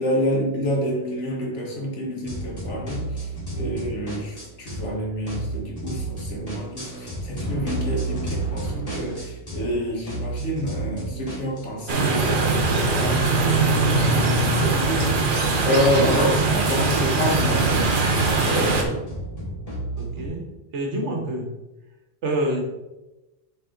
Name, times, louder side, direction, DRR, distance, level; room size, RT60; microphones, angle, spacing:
voice 1, 0.0-3.1 3.5-12.6 13.0-15.2 15.6-17.9 18.4-19.0, equal, 80° left, -1 dB, 1.8 m, -27 dB
sound 1, 2.3-4.9 5.2-9.8 10.1-20.3, right 2 dB, 30° left, 2.2 m, -33 dB
sound 2, 11.9-18.8, right 3 dB, 50° right, 1.0 m, -21 dB
voice 2, 20.0-21.6 22.2-22.6, right 1 dB, 80° right, 1 dB, 1.6 m, -28 dB
7.4 x 4.1 x 3.9 m, 1.0 s
omnidirectional pair, 1.2 m